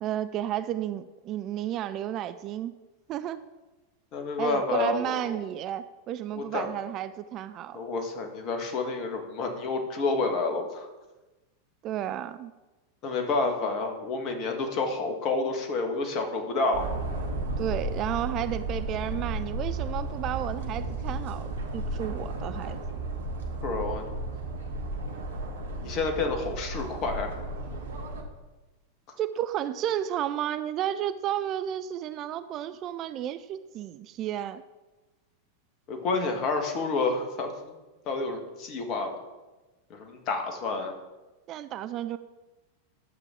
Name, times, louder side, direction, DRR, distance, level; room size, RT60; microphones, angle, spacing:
voice 1, 0.0-2.7 3.1-3.4 4.4-7.8 11.8-12.5 17.6-21.5 21.7-23.0 29.2-34.6 41.5-42.2, right 11 dB, 35° right, 13 dB, 0.4 m, -32 dB
voice 2, 4.1-5.4 6.3-6.7 7.7-10.9 13.0-16.9 23.6-24.1 25.8-27.3 35.9-37.7 38.0-39.1 39.9-40.9, left 3 dB, 35° left, 4 dB, 1.6 m, -29 dB
sound 1, 16.7-28.2, right 2 dB, 65° right, 1.4 m, -34 dB
11.5 x 7.2 x 3.8 m, 1.1 s
figure-of-eight pair, 90°, 0 cm